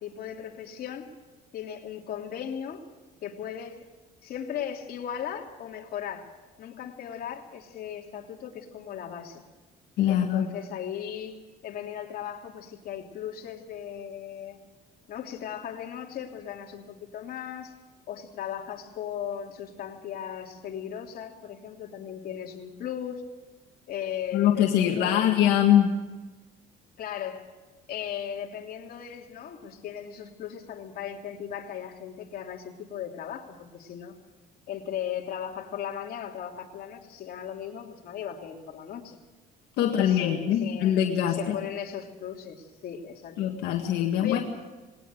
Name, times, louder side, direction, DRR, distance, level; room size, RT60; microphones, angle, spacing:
voice 1, 0.0-1.1 1.5-2.8 3.2-3.8 4.2-6.3 6.6-9.4 10.1-14.6 15.1-17.7 18.1-23.2 23.9-25.6 27.0-27.4 27.9-34.1 34.7-39.2 39.8-43.4 44.2-44.4, left 9 dB, 60° left, 1 dB, 3.1 m, -37 dB
voice 2, 10.0-10.5 24.3-25.9 39.8-41.6 43.4-44.4, left 10 dB, 80° left, 1 dB, 1.9 m, -23 dB
20.0 x 19.0 x 7.8 m, 1.2 s
cardioid pair, 110°, 17 cm